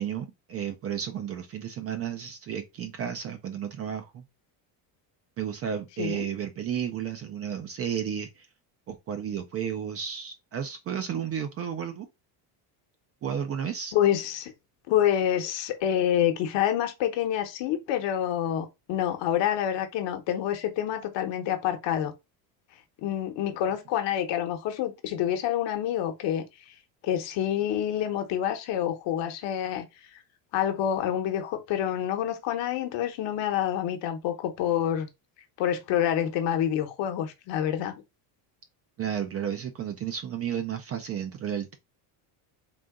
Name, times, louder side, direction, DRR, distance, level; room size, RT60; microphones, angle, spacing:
voice 1, 0.0-4.2 5.4-8.5 8.9-12.1 13.2-13.9 39.0-41.8, right 8 dB, 30° right, 0.4 m, -32 dB
voice 2, 13.9-14.5 14.9-22.1 23.0-26.7 27.0-29.9 30.5-35.1 35.6-37.9, left 10 dB, 60° left, 1.1 m, -27 dB
3.8 x 2.8 x 3.6 m
cardioid pair, 150°, 49 cm